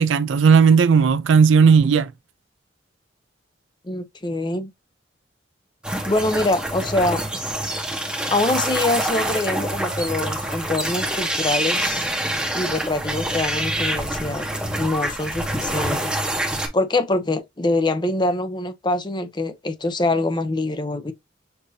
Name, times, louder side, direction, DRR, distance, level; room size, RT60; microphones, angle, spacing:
voice 1, 0.0-2.1, right 6 dB, 80° right, 0.4 m, -15 dB
voice 2, 3.8-4.7 6.0-7.2 8.3-12.1 12.5-14.4 14.7-16.2 16.5-21.1, left 2 dB, 25° left, 0.6 m, -24 dB
sound 1, 5.8-16.7, right 1 dB, 5° right, 0.9 m, -26 dB
6.6 x 2.7 x 2.7 m
head